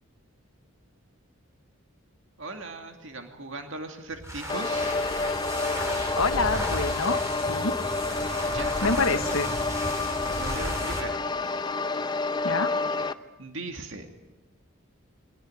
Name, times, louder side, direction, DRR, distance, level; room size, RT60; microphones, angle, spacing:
voice 1, 2.4-5.0 8.5-8.8 10.2-11.2 13.4-14.1, right 2 dB, 60° right, 5 dB, 2.4 m, -38 dB
sound 1, 4.1-11.1, equal, 15° right, 3.6 m, -34 dB
sound 2, 4.5-13.1, left 3 dB, 20° left, 0.7 m, -29 dB
voice 2, 6.2-7.2 7.5-7.7 8.8-9.5 12.4-12.7, left 4 dB, 80° left, 8 dB, 1.2 m, -26 dB
22.0 x 18.0 x 9.5 m, 1.1 s
head